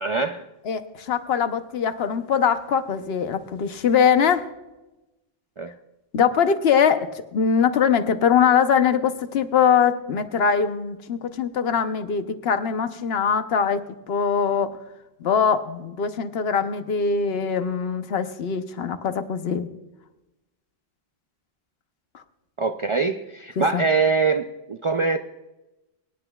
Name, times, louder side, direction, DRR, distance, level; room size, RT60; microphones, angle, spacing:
voice 1, 0.0-0.5 5.6-5.7 22.6-25.2, right 4 dB, 50° right, 6 dB, 0.3 m, -23 dB
voice 2, 0.7-4.5 6.1-14.8 15.2-19.7 23.6-23.8, left 7 dB, 80° left, 10 dB, 1.0 m, -22 dB
23.5 x 10.0 x 2.3 m, 1.0 s
omnidirectional pair, 1.0 m